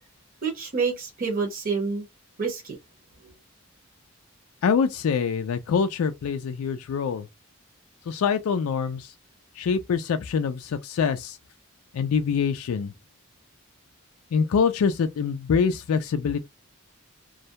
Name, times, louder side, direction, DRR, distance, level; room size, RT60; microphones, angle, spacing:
voice 1, 0.4-2.0 2.4-2.7, right 5 dB, 40° right, 0.8 m, -27 dB
voice 2, 4.6-7.3 8.1-9.1 9.6-11.4 11.9-12.9 14.3-16.4, left 6 dB, 85° left, 0.3 m, -25 dB
2.3 x 2.1 x 2.7 m
head